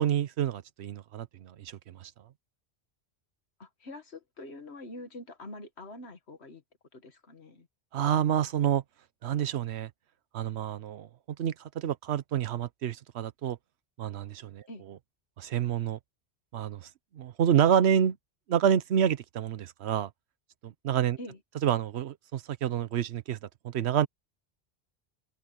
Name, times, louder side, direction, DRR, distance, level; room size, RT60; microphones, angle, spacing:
voice 1, 0.0-2.1 7.9-8.8 9.2-9.9 10.3-11.1 11.4-13.6 14.0-14.6 15.4-16.0 16.5-16.9 17.1-18.2 18.5-20.1 20.6-21.2 21.6-23.4 23.6-24.1, right 9 dB, 80° right, 1.0 m, -28 dB
voice 2, 3.6-6.6 6.9-7.7 14.7-14.8 21.2-21.4, left 1 dB, 75° left, 2.1 m, -45 dB
omnidirectional pair, 1.1 m